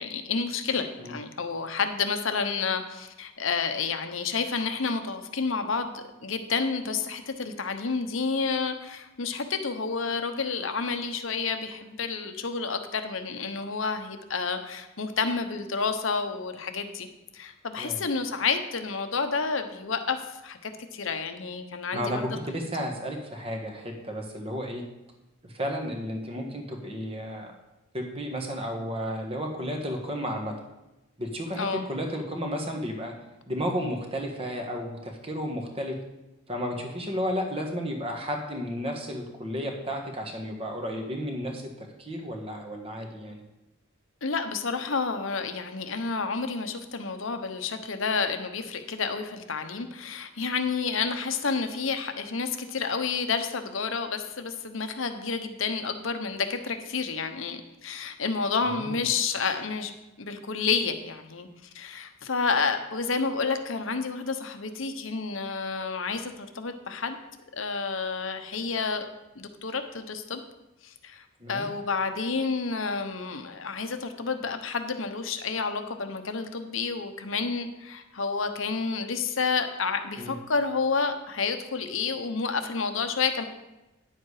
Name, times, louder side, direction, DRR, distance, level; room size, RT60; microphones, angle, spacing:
voice 1, 0.0-17.1 17.3-22.3 31.6-31.8 44.2-61.5 61.7-67.2 67.5-69.1 69.3-70.4 70.8-83.4, left 5 dB, 70° left, 7 dB, 1.0 m, -30 dB
voice 2, 21.9-24.8 25.4-27.5 27.9-30.5 31.2-33.1 33.5-35.9 36.5-43.4 58.7-59.1 71.4-71.7 80.2-80.3, equal, 25° right, 2 dB, 1.4 m, -33 dB
10.0 x 7.6 x 4.8 m, 0.97 s
head